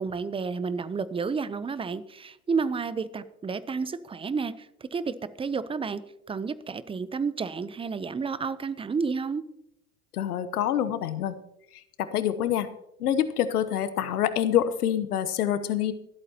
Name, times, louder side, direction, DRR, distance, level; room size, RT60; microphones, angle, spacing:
voice 1, 0.0-6.0 6.3-9.4, right 5 dB, 10° right, 15 dB, 0.6 m, -31 dB
voice 2, 10.1-11.4 11.7-12.7 13.0-15.9, left 10 dB, 85° left, 12 dB, 1.0 m, -26 dB
24.0 x 8.6 x 2.9 m, 0.81 s
hypercardioid pair, 90°, 44 cm